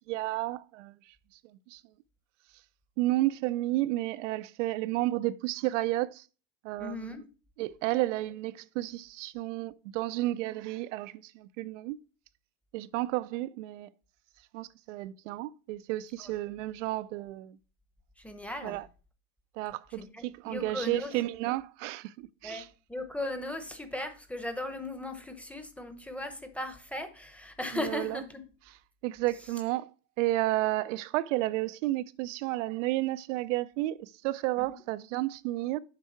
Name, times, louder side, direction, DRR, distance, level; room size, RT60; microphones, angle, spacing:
voice 1, 0.1-0.9 1.7-1.8 3.0-6.3 6.6-7.2 7.6-12.0 12.7-13.9 14.5-17.6 18.6-18.9 19.6-22.7 27.8-28.2 29.0-29.9 30.2-35.8, right 17 dB, 75° right, 0.5 m, -32 dB
voice 2, 6.8-7.2 16.2-16.3 18.2-18.8 19.9-21.1 22.4-22.6 22.9-28.4 34.6-34.7, left 1 dB, 5° left, 0.9 m, -37 dB
7.5 x 4.6 x 4.4 m
supercardioid pair, 125°, 37 cm